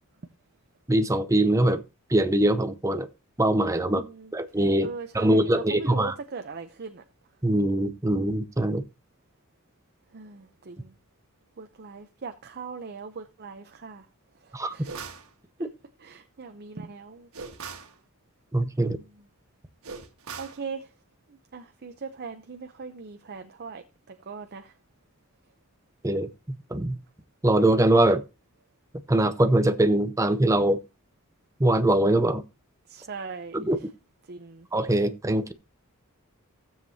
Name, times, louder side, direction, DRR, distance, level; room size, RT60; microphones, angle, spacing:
voice 1, 0.9-1.8 2.1-3.1 3.4-4.0 4.3-4.9 5.1-6.1 7.4-8.8 14.5-14.7 18.5-19.0 26.0-27.0 27.4-28.2 29.1-30.8 31.6-32.4 33.5-33.8 34.7-35.5, right 1 dB, 15° right, 0.7 m, -22 dB
voice 2, 3.8-4.3 4.8-7.0 10.1-10.9 11.6-14.1 14.4-15.0 15.6-15.7 16.0-17.3 18.8-19.1 20.4-20.9 21.3-24.7 32.9-33.6 34.3-34.7, right 5 dB, 50° right, 0.7 m, -40 dB
sound 1, 14.8-15.3 17.3-17.9 19.8-20.6, right 5 dB, 75° right, 1.5 m, -39 dB
15.5 x 7.4 x 2.8 m
head